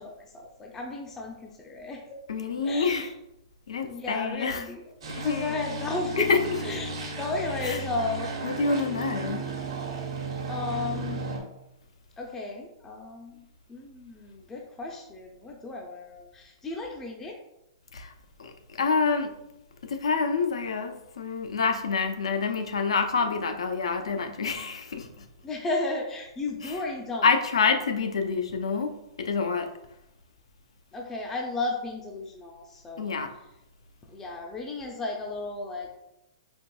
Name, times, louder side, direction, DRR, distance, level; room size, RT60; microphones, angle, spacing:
voice 1, 0.0-2.2 2.6-3.1 3.8-6.3 6.6-8.3 10.5-11.2 12.2-13.4 13.7-17.4 25.4-27.3 30.9-33.1 34.1-35.9, left 3 dB, 15° left, 0.4 m, -34 dB
voice 2, 2.3-3.1 3.7-4.6 5.2-5.5 6.2-6.6 7.6-7.8 8.4-9.5 17.9-18.1 18.4-19.4 19.8-25.2 26.6-26.8 27.2-29.7 33.0-33.3, left 5 dB, 90° left, 0.5 m, -27 dB
sound 1, 5.0-11.4, right 3 dB, 85° right, 1.0 m, -34 dB
4.4 x 2.9 x 2.2 m
hypercardioid pair, 140°, 3 cm